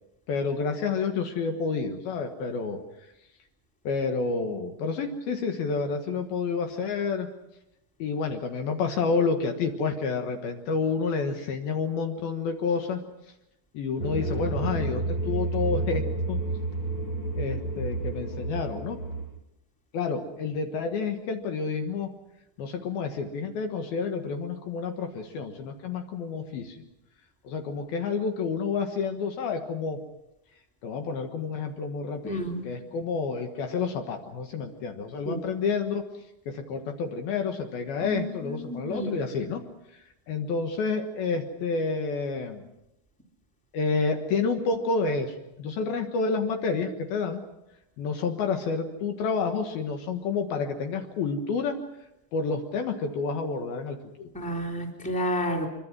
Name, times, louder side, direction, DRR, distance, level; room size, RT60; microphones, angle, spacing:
voice 1, 0.3-2.8 3.8-7.3 8.0-13.0 13.7-16.4 17.3-19.0 19.9-22.1 22.6-26.8 27.4-30.0 30.8-36.1 36.5-39.6 39.9-40.0 40.3-42.6 43.7-47.4 48.0-51.8 52.3-54.3, left 4 dB, 70° left, 5 dB, 3.0 m, -29 dB
sound 1, 14.0-19.2, right 3 dB, 40° left, 8.6 m, -30 dB
voice 2, 32.2-32.6 35.2-35.4 38.0-39.2 54.3-55.7, equal, ahead, 1 dB, 2.7 m, -31 dB
24.5 x 23.5 x 6.2 m, 0.90 s
omnidirectional pair, 4.9 m